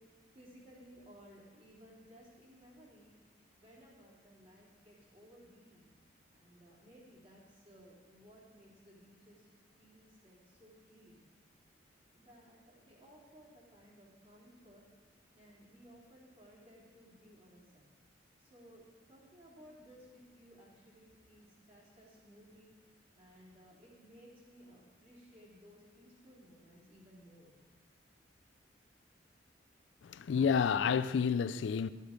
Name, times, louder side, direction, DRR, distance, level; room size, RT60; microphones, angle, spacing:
voice 1, 0.3-3.1 3.6-5.9 6.3-9.5 9.8-11.2 12.1-14.8 15.3-17.9 18.4-22.7 23.2-27.6, equal, 35° right, 3.4 m, -59 dB
voice 2, 30.0-31.9, left 6 dB, 75° left, 0.3 m, -30 dB
12.5 x 8.2 x 5.1 m
head